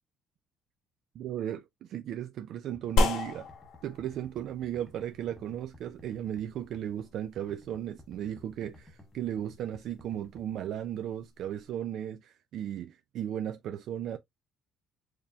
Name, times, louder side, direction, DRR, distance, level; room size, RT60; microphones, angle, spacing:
voice 1, 1.1-3.5 3.8-14.2, right 10 dB, 60° right, 0.4 m, -36 dB
sound 1, 2.7-10.7, left 2 dB, 10° left, 0.7 m, -56 dB
sound 2, 3.0-11.7, left 1 dB, 65° left, 1.2 m, -36 dB
4.7 x 3.4 x 2.3 m
cardioid pair, 160°, 0 cm